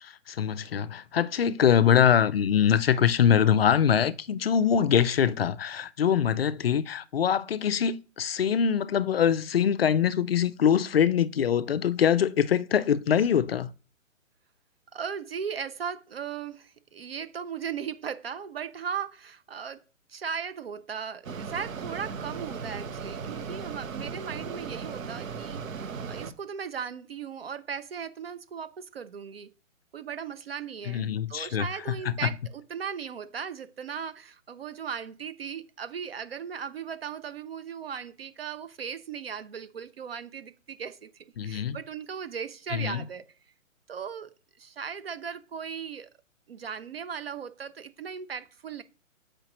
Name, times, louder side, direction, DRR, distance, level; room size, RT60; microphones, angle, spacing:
voice 1, 0.0-13.7 30.9-31.7 32.1-32.3 41.4-41.8 42.7-43.0, left 8 dB, 50° left, 0.4 m, -23 dB
voice 2, 14.9-19.8 20.1-29.5 29.9-43.3 43.9-46.1 46.5-48.8, right 7 dB, 50° right, 0.5 m, -37 dB
Mechanisms, 21.2-26.3, right 5 dB, 80° right, 0.9 m, -37 dB
7.3 x 4.9 x 2.9 m
hypercardioid pair, 150°, 40 cm